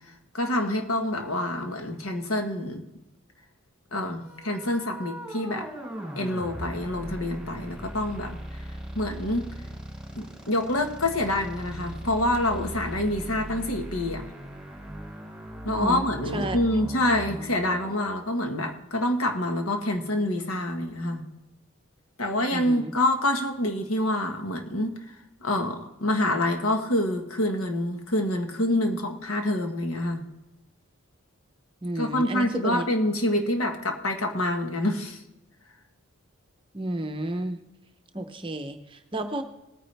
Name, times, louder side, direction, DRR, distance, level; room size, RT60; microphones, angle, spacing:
voice 1, 0.3-2.8 3.9-5.7 6.2-8.4 8.9-9.5 10.1-14.2 15.6-21.2 22.2-25.0 25.4-30.2 32.0-35.2, left 1 dB, 75° left, 4 dB, 1.4 m, -26 dB
sound 1, 4.2-18.1, equal, 5° right, 3.6 m, -39 dB
voice 2, 15.7-16.6 22.5-22.9 31.8-32.9 36.7-37.6 38.1-39.4, right 1 dB, 25° right, 7 dB, 0.8 m, -31 dB
19.0 x 9.5 x 3.4 m, 0.95 s
head